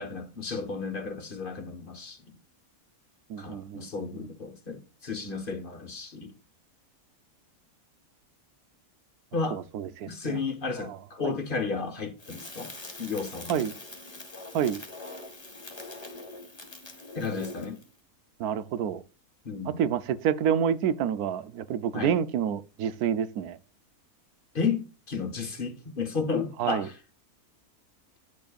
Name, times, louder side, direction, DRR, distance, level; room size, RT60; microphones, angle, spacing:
voice 1, 0.0-2.3 3.4-6.3 9.3-9.6 10.0-12.7 13.0-13.7 17.1-17.8 19.4-19.8 21.9-22.2 24.5-27.0, left 4 dB, 40° left, 1.2 m, -33 dB
voice 2, 3.3-3.9 9.5-10.4 10.8-11.0 11.2-11.3 13.5-13.7 14.5-14.8 18.4-19.0 19.7-23.6 26.6-26.9, right 8 dB, 75° right, 1.2 m, -28 dB
Crackle, 12.2-17.9, left 2 dB, 15° left, 1.6 m, -43 dB
9.5 x 7.5 x 2.4 m
omnidirectional pair, 1.6 m